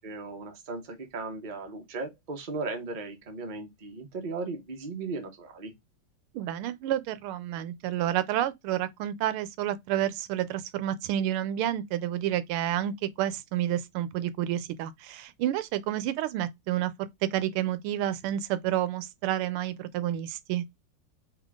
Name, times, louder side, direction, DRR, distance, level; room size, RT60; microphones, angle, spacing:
voice 1, 0.0-5.7, right 3 dB, 35° right, 0.8 m, -37 dB
voice 2, 6.3-20.6, right 12 dB, 85° right, 1.5 m, -30 dB
3.7 x 3.7 x 3.5 m
omnidirectional pair, 2.4 m